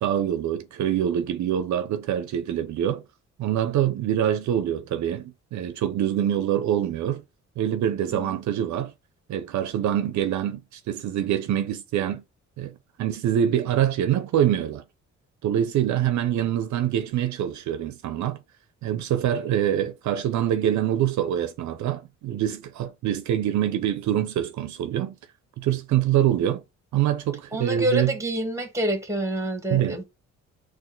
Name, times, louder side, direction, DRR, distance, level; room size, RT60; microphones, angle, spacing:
voice 1, 0.0-3.0 3.4-7.2 7.6-8.9 9.3-12.2 12.6-12.7 13.0-14.8 15.4-18.4 18.8-25.1 25.6-26.6 26.9-28.1 29.7-30.0, right 10 dB, 70° right, 0.6 m, -25 dB
voice 2, 27.5-30.0, right 1 dB, 10° right, 1.3 m, -27 dB
4.0 x 2.5 x 3.8 m
cardioid pair, 90°, 30 cm